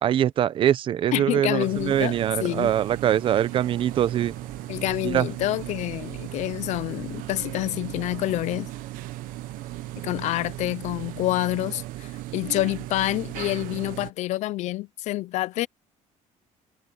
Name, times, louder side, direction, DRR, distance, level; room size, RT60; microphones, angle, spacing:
voice 1, 0.0-4.3 5.0-5.3, right 10 dB, 40° right, 0.6 m, -23 dB
voice 2, 1.1-2.7 4.7-8.7 10.0-15.7, left 16 dB, 60° left, 0.5 m, -27 dB
sound 1, 1.6-14.1, right 17 dB, 85° right, 0.8 m, -37 dB
sound 2, 3.0-10.7, left 6 dB, 30° left, 4.7 m, -56 dB
cardioid pair, 180°, 14 cm